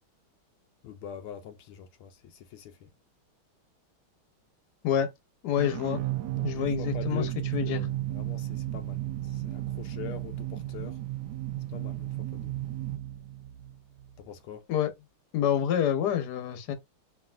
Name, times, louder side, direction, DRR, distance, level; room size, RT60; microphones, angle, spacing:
voice 1, 0.8-2.9 6.3-7.3 7.6-11.0 11.7-12.5 14.2-14.7, left 9 dB, 80° left, 1.4 m, -44 dB
voice 2, 5.4-6.0 6.4-7.9 14.7-14.9 15.3-16.7, left 9 dB, 60° left, 1.3 m, -27 dB
sound 1, 5.6-14.3, right 15 dB, 80° right, 0.9 m, -34 dB
4.6 x 3.0 x 2.4 m
omnidirectional pair, 2.4 m